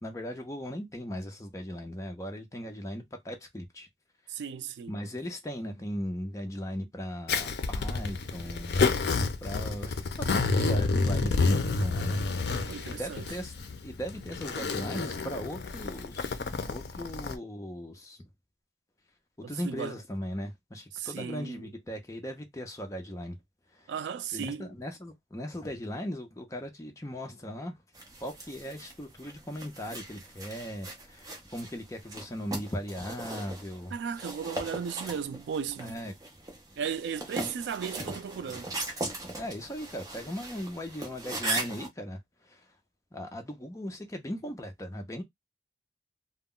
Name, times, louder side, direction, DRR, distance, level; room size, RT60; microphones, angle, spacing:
voice 1, 0.0-3.9 4.9-8.9 9.4-12.2 12.5-13.5 13.8-18.2 19.4-23.4 23.7-23.9 24.3-27.8 28.2-33.9 35.8-36.1 37.4-37.5 39.4-42.7 43.1-45.2, equal, 20° left, 0.5 m, -38 dB
voice 2, 4.3-5.0 12.7-13.3 19.4-20.0 20.9-21.7 23.9-24.7 33.9-36.0 36.8-38.7, right 7 dB, 80° right, 0.3 m, -36 dB
Zipper (clothing), 7.3-17.4, left 4 dB, 75° left, 0.4 m, -29 dB
sound 1, 27.9-41.9, right 2 dB, 20° right, 0.7 m, -39 dB
2.2 x 2.0 x 3.6 m
head